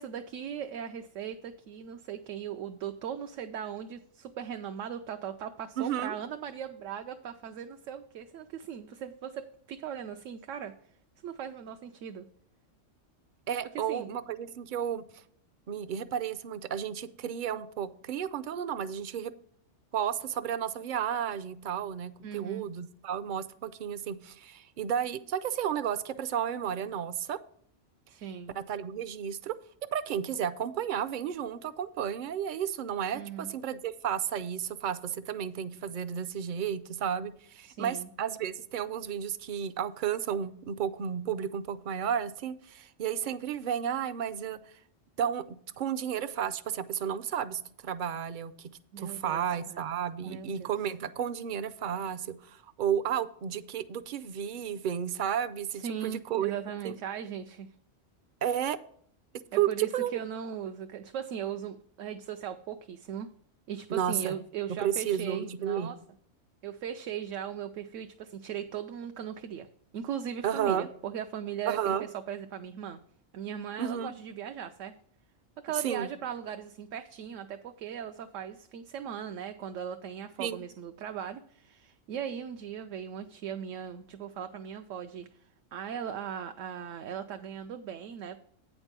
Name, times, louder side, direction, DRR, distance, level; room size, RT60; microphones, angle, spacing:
voice 1, 0.0-10.7 11.2-12.3 13.7-14.1 22.2-22.7 28.1-28.6 33.1-33.5 37.7-38.1 48.9-49.8 50.2-50.7 55.8-57.7 59.5-63.3 63.7-66.0 66.6-69.7 69.9-71.9 72.3-73.0 73.3-74.9 75.6-85.4 85.7-88.4, right 8 dB, 85° right, 6 dB, 1.0 m, -38 dB
voice 2, 5.8-6.1 13.5-15.2 15.7-19.3 19.9-27.4 28.5-29.6 29.9-44.6 45.2-45.4 45.8-48.7 49.0-56.5 56.8-56.9 58.4-58.8 59.5-59.7 59.9-60.1 63.9-64.3 64.8-65.9 70.4-70.9 71.7-72.1 73.8-74.1 75.8-76.1 80.4-80.6, right 9 dB, 60° right, 13 dB, 0.5 m, -32 dB
8.7 x 5.4 x 5.8 m, 0.63 s
omnidirectional pair, 1.3 m